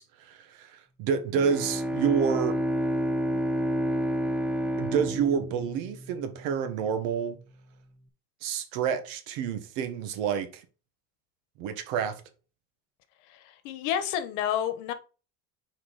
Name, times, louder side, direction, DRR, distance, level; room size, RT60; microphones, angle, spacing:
voice 1, 0.0-2.6 4.8-7.4 8.4-10.6 11.6-12.2, right 7 dB, 75° right, 1.3 m, -29 dB
Bowed string instrument, 1.3-6.5, equal, 5° right, 0.7 m, -29 dB
voice 2, 13.3-14.9, left 10 dB, 90° left, 1.2 m, -30 dB
6.2 x 4.5 x 4.0 m
cardioid pair, 135°, 35 cm